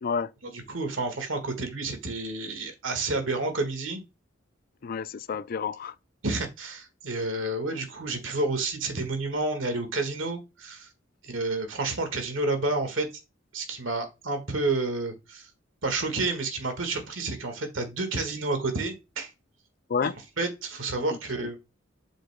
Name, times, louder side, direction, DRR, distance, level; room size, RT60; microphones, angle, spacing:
voice 1, 0.4-4.0 6.2-10.9 11.2-13.1 13.5-15.5 15.8-19.3 20.0-20.1 20.4-21.5, right 2 dB, 85° right, 1.6 m, -30 dB
voice 2, 4.8-5.9 19.9-20.1, left 6 dB, 50° left, 0.4 m, -29 dB
7.9 x 6.3 x 2.2 m
head